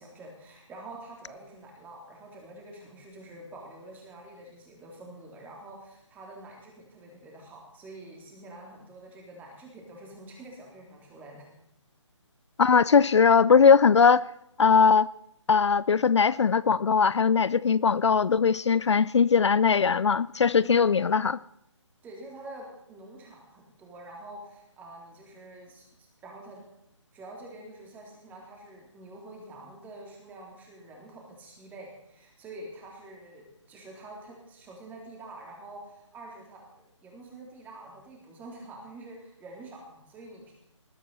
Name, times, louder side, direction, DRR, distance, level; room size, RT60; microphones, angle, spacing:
voice 1, 0.0-11.5 20.6-21.0 22.0-26.6 27.1-36.7 37.0-40.5, right 2 dB, 10° right, 3.2 m, -46 dB
voice 2, 12.6-14.2 14.6-15.1 15.5-21.4, left 6 dB, 65° left, 0.4 m, -20 dB
19.5 x 12.5 x 4.1 m
figure-of-eight pair, 145°, 16 cm